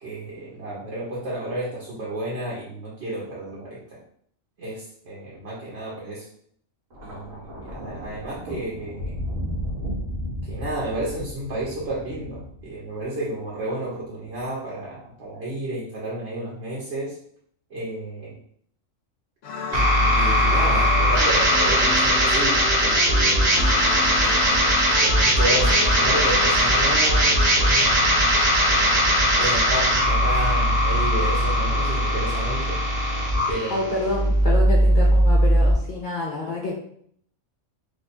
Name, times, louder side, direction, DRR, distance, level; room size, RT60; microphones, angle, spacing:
voice 1, 0.0-4.0 4.6-6.3 7.0-9.1 10.4-17.1 17.7-18.4 19.7-23.7 24.8-28.2 28.6-32.8 33.5-33.9, right 1 dB, 60° right, -5 dB, 1.1 m, -32 dB
Thunder, 6.9-13.3 14.2-14.5, equal, 85° right, 1.6 m, -34 dB
sound 1, 19.4-29.8, left 4 dB, 75° left, 0.9 m, -33 dB
sound 2, 19.7-35.7, equal, 40° right, 0.8 m, -19 dB
voice 2, 33.7-36.7, left 2 dB, 50° left, -2 dB, 0.6 m, -28 dB
3.1 x 2.4 x 4.1 m, 0.64 s
omnidirectional pair, 1.3 m